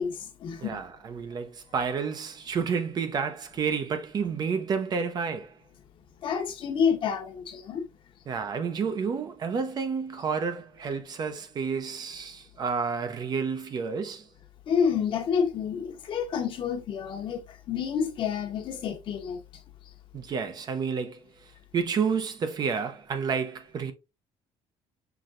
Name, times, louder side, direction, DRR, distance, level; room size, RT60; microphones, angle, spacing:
voice 1, 0.0-0.8 6.2-7.9 14.7-19.4, left 7 dB, 50° left, 1.0 m, -29 dB
voice 2, 0.6-5.5 8.3-14.3 20.1-21.2 21.7-23.9, right 6 dB, 35° right, 0.6 m, -30 dB
5.9 x 3.2 x 2.5 m
cardioid pair, 155°, 11 cm